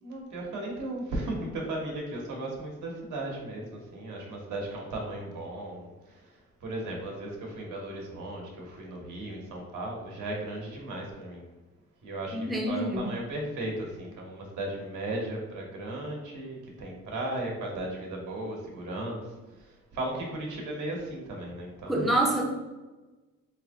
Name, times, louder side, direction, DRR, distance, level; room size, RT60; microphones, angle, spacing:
voice 1, 0.0-11.5 12.0-19.2 19.6-22.1, right 1 dB, 80° right, 0 dB, 1.1 m, -36 dB
voice 2, 12.3-13.1 21.9-22.5, right 1 dB, ahead, 0 dB, 0.5 m, -26 dB
3.1 x 2.6 x 3.5 m, 1.2 s
cardioid pair, 90°, 30 cm